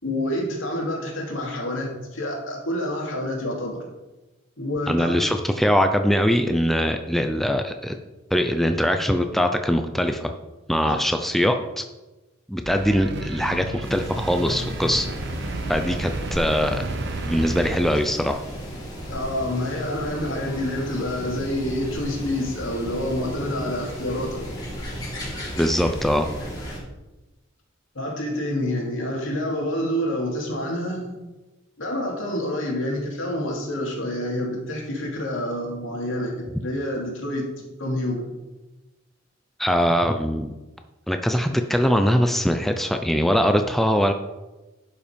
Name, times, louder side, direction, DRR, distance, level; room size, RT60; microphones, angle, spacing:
voice 1, 0.0-3.8 4.6-5.1 19.1-24.4 27.9-31.2 31.8-37.5 37.8-38.3, left 1 dB, 75° left, -1 dB, 2.6 m, -28 dB
voice 2, 4.9-8.0 8.3-10.3 10.7-11.8 12.5-15.1 15.7-16.8 17.2-18.4 25.6-26.3 39.6-40.5 41.1-44.1, equal, ahead, 6 dB, 0.4 m, -22 dB
sound 1, 12.6-17.8, right 2 dB, 60° right, 0.7 m, -32 dB
sound 2, 13.8-26.8, equal, 20° left, 2.6 m, -35 dB
11.0 x 5.4 x 5.1 m, 1.1 s
head